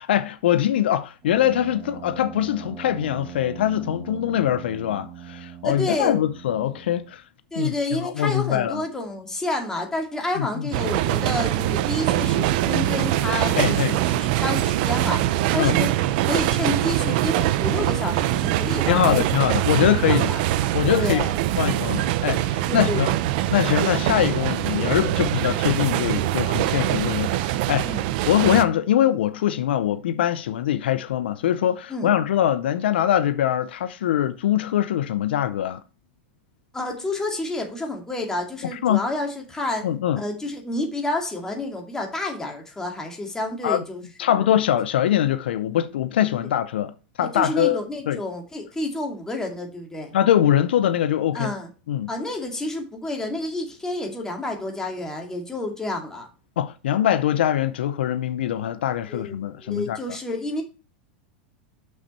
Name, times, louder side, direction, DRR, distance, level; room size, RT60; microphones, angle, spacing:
voice 1, 0.0-7.2 7.6-8.8 10.4-10.7 13.6-14.0 15.6-15.8 18.9-20.3 20.7-21.2 21.6-23.1 23.5-28.0 28.3-35.8 38.7-39.0 39.8-40.2 43.6-43.8 44.2-46.9 47.2-47.8 48.1-48.2 50.1-51.5 51.9-52.1 56.6-60.0, left 11 dB, 85° left, 0.7 m, -23 dB
Brass instrument, 1.2-7.1, right 9 dB, 25° right, 4.6 m, -41 dB
voice 2, 5.6-6.2 7.5-15.2 15.5-15.9 16.2-19.2 20.1-20.4 21.0-21.4 22.7-23.2 27.8-28.0 31.9-32.1 36.7-39.8 40.2-44.0 44.3-44.4 47.2-50.1 51.3-51.7 52.1-56.3 59.1-60.6, left 2 dB, 10° left, 2.2 m, -29 dB
sound 1, 10.7-28.6, right 14 dB, 60° right, 0.6 m, -23 dB
6.6 x 6.5 x 4.3 m
supercardioid pair, 130°, 6 cm